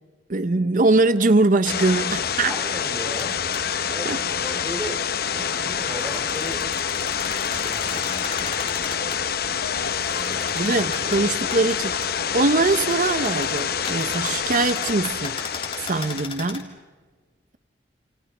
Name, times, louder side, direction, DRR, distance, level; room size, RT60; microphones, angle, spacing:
voice 1, 0.3-2.5 4.1-4.2 10.5-11.9 12.3-15.4 15.8-16.7, right 3 dB, 50° right, 0.7 m, -22 dB
sound 1, 1.7-16.3, left 7 dB, 60° left, 0.8 m, -27 dB
voice 2, 2.4-3.4 3.8-5.0 5.3-6.6 7.5-8.7 10.1-11.7, right 1 dB, 15° right, 3.3 m, -37 dB
sound 2, 3.2-3.3 3.5-3.6 5.1-9.2 9.9-12.4 12.7-16.6, left 4 dB, 30° left, 3.0 m, -37 dB
sound 3, 5.9-11.5, right 1 dB, 30° right, 5.2 m, -50 dB
29.0 x 27.5 x 5.5 m
head